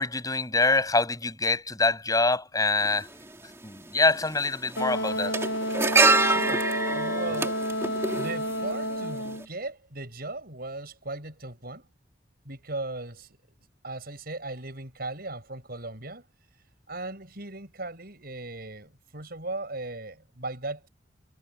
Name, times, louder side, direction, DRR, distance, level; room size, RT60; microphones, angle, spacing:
voice 1, 0.0-3.1 3.6-5.3, left 3 dB, 20° left, 7.1 m, -25 dB
sound 1, 2.8-2.9 4.1-4.4 4.7-9.0 9.3-9.4, right 3 dB, 15° right, 2.9 m, -25 dB
Wind instrument woodwind instrument, 4.8-9.5, equal, 80° left, 1.4 m, -30 dB
voice 2, 6.2-7.6 8.1-11.9 12.4-13.4 13.8-16.3 16.9-20.9, right 2 dB, 55° right, 8.0 m, -37 dB
head